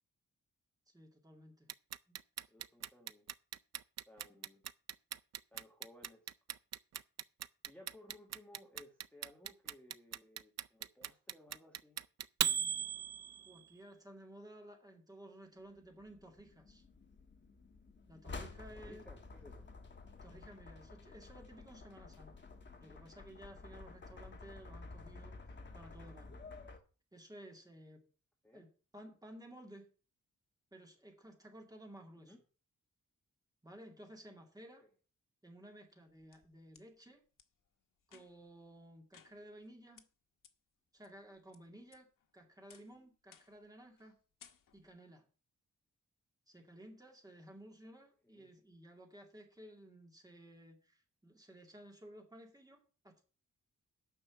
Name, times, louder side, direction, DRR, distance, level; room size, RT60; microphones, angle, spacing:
voice 1, 0.9-1.7 2.1-2.2 13.4-16.8 18.1-19.1 20.2-22.5 22.8-25.4 25.7-26.5 27.1-28.0 28.5-28.7 28.9-29.9 30.7-32.3 33.6-34.8 35.4-37.2 38.1-40.0 40.9-42.1 42.3-44.1 44.7-45.2 46.5-53.3, right 1 dB, 10° right, 2 dB, 2.1 m, -55 dB
Clock, 1.7-13.7, right 10 dB, 55° right, 0.4 m, -38 dB
voice 2, 2.5-3.3 4.1-4.6 5.5-6.3 7.6-12.0 18.7-19.7 28.4-28.7 32.2-32.4 48.2-48.5, left 1 dB, 5° left, -2 dB, 1.6 m, -59 dB
sound 1, 15.8-26.8, left 3 dB, 35° left, 1.3 m, -52 dB
sound 2, 35.9-36.9 37.4-37.5 38.0-38.5 39.1-39.7 40.0-40.1 40.4-40.5 41.0-41.6 41.9-42.3 42.7-43.0 43.3-43.7 44.0-44.1 44.4-45.0, left 7 dB, 85° left, 1.2 m, -62 dB
9.5 x 6.0 x 7.2 m, 0.38 s
wide cardioid pair, 180°, 32 cm